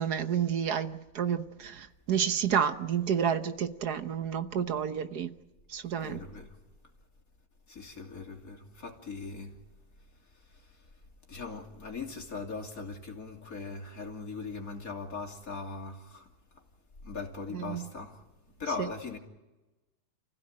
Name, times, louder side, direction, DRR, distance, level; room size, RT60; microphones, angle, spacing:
voice 1, 0.0-5.3 5.7-6.2 17.5-17.8, right 8 dB, 70° right, 1.6 m, -30 dB
voice 2, 6.0-6.6 7.7-9.6 10.3-10.9 11.3-16.3 17.0-18.2 18.6-19.2, left 4 dB, 55° left, 3.3 m, -40 dB
29.0 x 16.0 x 8.9 m
omnidirectional pair, 1.8 m